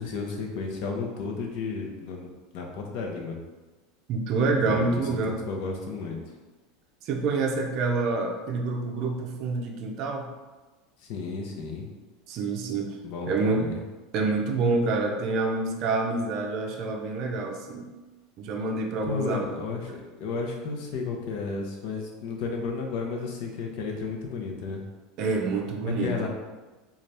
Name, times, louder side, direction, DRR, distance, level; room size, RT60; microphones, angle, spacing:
voice 1, 0.0-3.4 4.6-6.2 11.1-11.9 13.0-13.8 19.0-24.8 25.8-26.3, left 4 dB, 55° left, 1 dB, 0.7 m, -33 dB
voice 2, 4.1-5.4 7.0-10.3 12.3-12.9 13.3-13.7 14.1-17.9 18.4-19.5 25.2-26.3, right 3 dB, 45° right, 2 dB, 0.5 m, -27 dB
4.0 x 2.4 x 3.2 m, 1.2 s
supercardioid pair, 150°, 0 cm